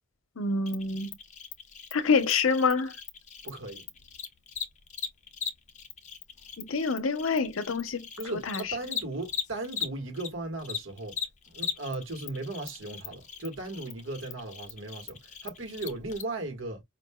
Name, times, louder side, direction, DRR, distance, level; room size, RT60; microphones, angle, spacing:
voice 1, 0.4-1.1 1.9-2.9 6.6-8.6, left 4 dB, 90° left, 0.8 m, -27 dB
Cricket, 0.7-10.3 10.6-16.2, left 7 dB, 35° left, 0.7 m, -39 dB
voice 2, 3.4-3.8 8.1-11.2 11.5-16.8, right 2 dB, 80° right, 1.5 m, -37 dB
5.2 x 2.5 x 2.2 m
head